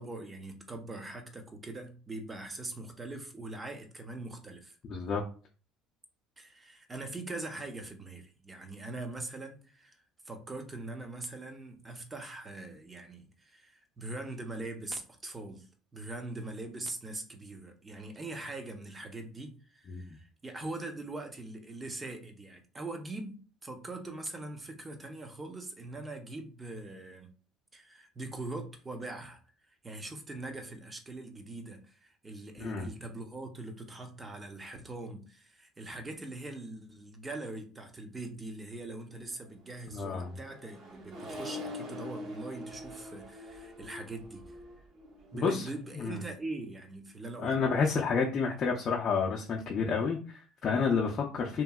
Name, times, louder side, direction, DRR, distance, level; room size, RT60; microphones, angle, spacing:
voice 1, 0.0-4.8 6.4-27.3 27.7-29.4 29.7-44.6 45.3-47.6, right 2 dB, 20° right, 0.7 m, -42 dB
voice 2, 4.9-5.2 19.9-20.1 32.6-32.9 39.9-40.3 45.3-45.7 46.0-46.2 47.4-51.6, left 5 dB, 45° left, 0.5 m, -30 dB
Accelerating revving vroom, 39.7-46.4, left 1 dB, 50° right, 1.0 m, -45 dB
2.9 x 2.6 x 2.3 m
supercardioid pair, 95°, 0 cm